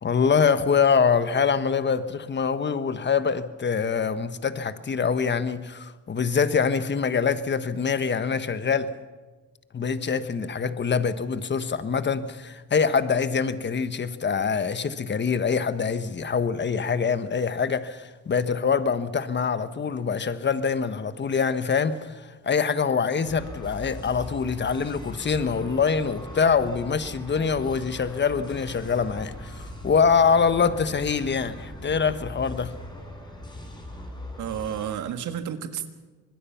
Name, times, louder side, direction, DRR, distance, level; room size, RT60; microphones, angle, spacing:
voice 1, 0.0-8.9 9.7-32.7, left 6 dB, 35° left, 1.3 m, -24 dB
sound 1, 23.3-34.9, left 1 dB, 15° left, 5.0 m, -40 dB
voice 2, 34.4-35.9, right 9 dB, 80° right, 1.8 m, -31 dB
25.0 x 21.0 x 5.8 m
cardioid pair, 90°, 30 cm